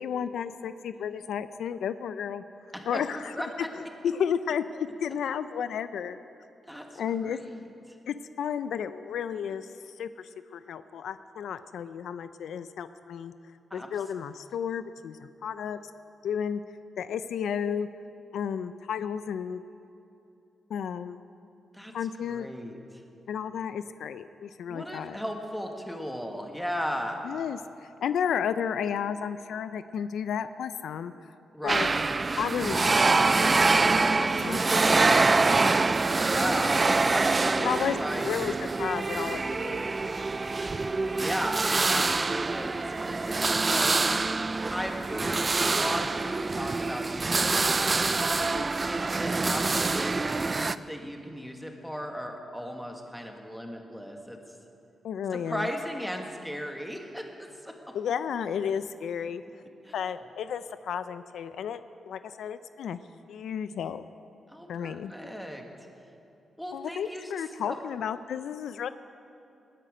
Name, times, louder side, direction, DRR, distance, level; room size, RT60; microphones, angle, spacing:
voice 1, 0.0-2.4 2.8-3.4 3.7-6.2 7.0-7.4 8.1-13.3 13.7-15.8 16.2-16.6 17.0-17.9 18.3-19.6 20.7-21.2 21.9-22.5 23.3-25.2 27.2-31.1 31.6-31.9 32.4-34.6 34.9-35.6 37.6-38.0 38.2-38.5 38.8-39.9 48.4-48.7 55.0-55.7 57.9-59.4 59.9-61.8 62.1-63.0 63.3-64.0 64.7-65.1 66.7-68.9, left 8 dB, 85° left, 12 dB, 0.4 m, -33 dB
voice 2, 2.7-3.7 6.7-8.0 13.7-13.9 21.7-21.9 22.3-23.0 24.7-27.3 31.5-31.9 34.7-35.6 36.2-36.8 37.1-37.7 38.0-38.7 40.8-44.0 44.7-47.8 48.9-54.4 55.3-57.9 59.8-59.9 64.5-65.7 66.6-67.3 67.7-67.8, equal, ahead, 3 dB, 1.5 m, -36 dB
sound 1, 31.7-50.7, right 3 dB, 30° right, 0.3 m, -25 dB
19.5 x 10.0 x 5.1 m, 2.9 s
cardioid pair, 105°, 0 cm